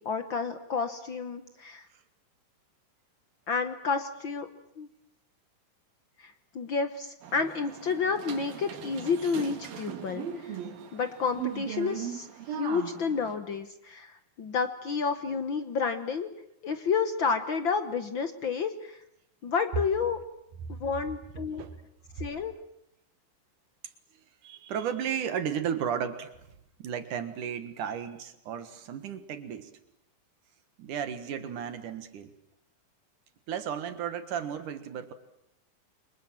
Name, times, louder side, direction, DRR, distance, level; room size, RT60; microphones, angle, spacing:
voice 1, 0.0-1.9 3.5-4.5 4.8-4.9 6.2-10.6 10.9-16.3 16.6-19.0 19.4-20.2 20.8-21.6 22.2-22.5, left 5 dB, 70° left, 9 dB, 1.1 m, -30 dB
sound 1, 7.2-13.4, right 9 dB, 85° right, 3.9 m, -39 dB
voice 2, 24.4-26.3 26.8-29.7 30.8-32.3 33.5-35.1, right 8 dB, 65° right, 10 dB, 3.0 m, -34 dB
29.0 x 24.5 x 7.7 m, 0.79 s
omnidirectional pair, 4.0 m